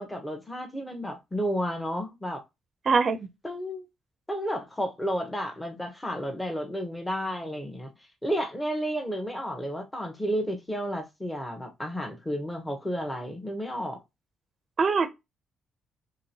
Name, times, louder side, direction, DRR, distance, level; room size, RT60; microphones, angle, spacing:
voice 1, 0.0-2.4 3.4-3.9 4.3-7.9 8.2-14.0, equal, 10° left, 0.8 m, -32 dB
voice 2, 2.9-3.3 14.8-15.1, right 5 dB, 45° right, 0.4 m, -23 dB
2.9 x 2.9 x 2.7 m
cardioid pair, 90°, 0 cm